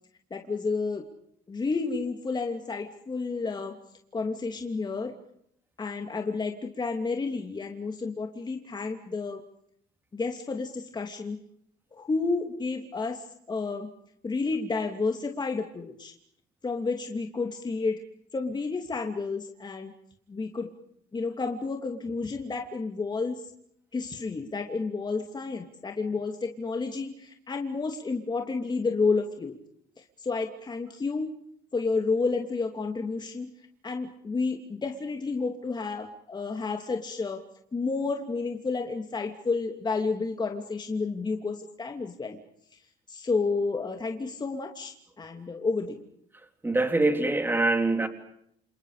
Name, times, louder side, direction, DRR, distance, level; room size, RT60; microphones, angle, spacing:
voice 1, 0.3-1.1 1.5-3.8 4.1-5.1 5.8-9.4 10.1-11.4 12.0-13.9 14.2-16.1 16.6-18.0 18.3-19.9 20.3-20.7 21.1-23.4 23.9-29.6 30.0-31.3 31.7-33.5 33.8-37.4 37.7-42.4 43.1-46.0, left 4 dB, 25° left, 2.8 m, -30 dB
voice 2, 46.6-48.1, right 2 dB, 10° right, 3.6 m, -24 dB
29.5 x 28.5 x 5.1 m
cardioid pair, 110°, 17 cm